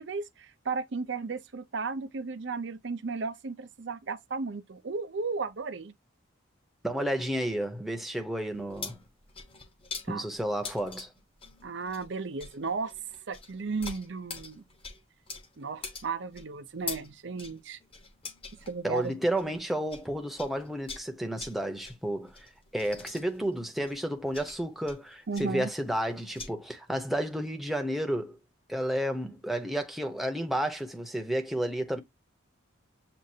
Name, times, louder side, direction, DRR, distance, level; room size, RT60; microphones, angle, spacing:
voice 1, 0.0-5.9 10.1-10.3 11.6-12.9 13.3-14.6 15.6-17.8 18.7-19.2 25.3-25.7, right 4 dB, 60° right, 0.6 m, -34 dB
voice 2, 6.8-9.0 10.1-11.1 18.8-28.4 28.7-32.0, right 1 dB, ahead, 0.8 m, -31 dB
sound 1, 8.5-20.1 20.4-26.5, left 4 dB, 25° left, 1.0 m, -44 dB
7.5 x 2.5 x 2.7 m
head